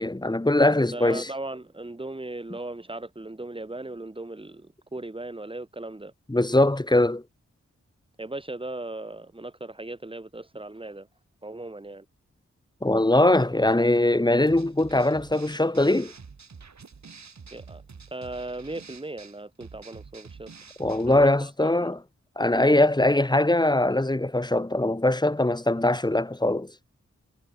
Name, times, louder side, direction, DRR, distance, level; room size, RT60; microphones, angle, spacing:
voice 1, 0.0-1.3 6.3-7.2 12.8-16.1 20.8-22.0 22.4-26.7, left 1 dB, 15° left, 1.6 m, -21 dB
voice 2, 0.9-6.1 8.2-11.1 11.4-12.0 17.5-17.8 18.1-20.5 21.1-21.9, right 2 dB, 20° right, 1.7 m, -37 dB
sound 1, 14.5-21.3, right 5 dB, 70° right, 2.9 m, -47 dB
wide cardioid pair, 100°, 30 cm